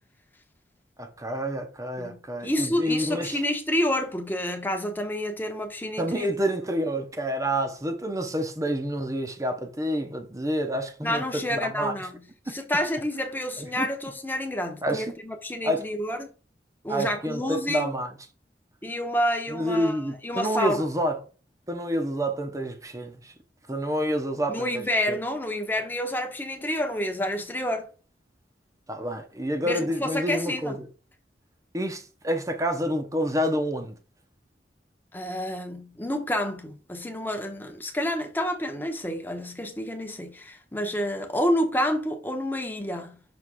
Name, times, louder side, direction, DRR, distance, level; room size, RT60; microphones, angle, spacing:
voice 1, 1.0-3.4 6.0-11.9 12.5-12.6 13.6-13.9 14.8-15.1 15.6-15.9 16.9-18.1 19.5-21.2 21.7-23.3 23.7-25.2 28.9-30.9 31.7-34.0, equal, 20° right, 0.8 m, -28 dB
voice 2, 2.0-6.3 11.0-12.2 12.5-16.3 16.8-17.9 18.8-20.8 24.5-27.9 29.6-30.8 35.1-43.2, left 1 dB, 10° left, 0.9 m, -29 dB
6.1 x 3.2 x 4.9 m
head